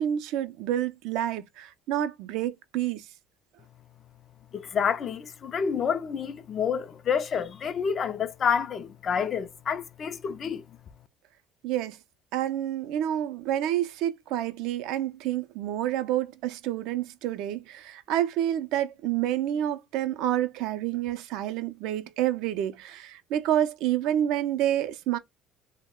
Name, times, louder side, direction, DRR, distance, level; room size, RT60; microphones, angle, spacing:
voice 1, 0.0-3.1 11.6-12.0 12.3-25.2, right 11 dB, 75° right, 0.4 m, -28 dB
voice 2, 4.5-10.6, left 7 dB, 45° left, 0.3 m, -28 dB
2.2 x 2.0 x 3.5 m
supercardioid pair, 90°, 0 cm